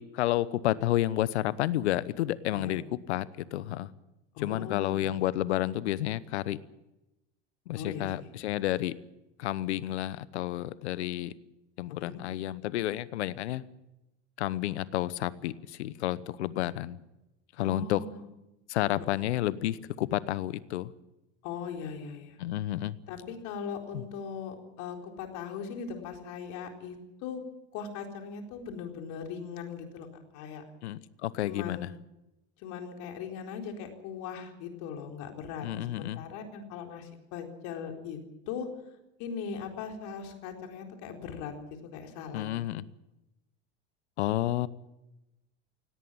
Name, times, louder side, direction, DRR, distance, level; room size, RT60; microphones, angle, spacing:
voice 1, 0.1-3.9 4.4-6.6 7.7-8.9 9.4-11.3 11.8-13.6 14.4-17.0 17.6-18.0 18.7-20.9 22.4-22.9 23.9-24.0 30.8-31.9 35.6-36.2 42.3-42.8 44.2-44.7, left 14 dB, 80° left, 18 dB, 1.0 m, -30 dB
voice 2, 4.3-5.3 7.7-8.3 12.0-12.1 17.6-18.2 19.1-19.2 21.4-22.4 23.1-27.4 27.7-30.1 30.3-30.6 31.4-31.9 32.6-38.2 38.5-38.7 39.2-41.5 41.9-42.4, left 6 dB, 60° left, 3 dB, 4.2 m, -39 dB
18.0 x 17.5 x 8.8 m, 0.94 s
hypercardioid pair, 85°, 33 cm